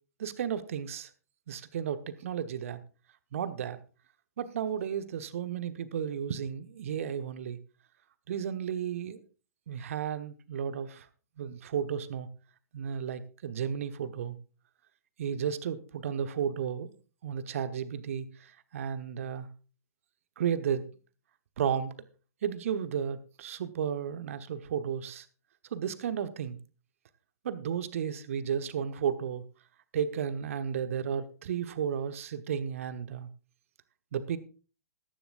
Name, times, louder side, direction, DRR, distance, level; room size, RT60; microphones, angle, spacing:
voice 1, 0.2-1.1 1.5-2.8 3.3-3.8 4.4-7.6 8.3-9.2 9.7-11.1 11.4-12.3 12.7-14.4 15.2-16.9 17.2-19.5 20.4-20.9 21.6-21.9 22.4-25.3 25.7-26.6 27.4-29.4 29.9-33.3 34.1-34.4, right 8 dB, 55° right, 1.2 m, -33 dB
14.0 x 13.5 x 2.5 m
figure-of-eight pair, 110°, 9 cm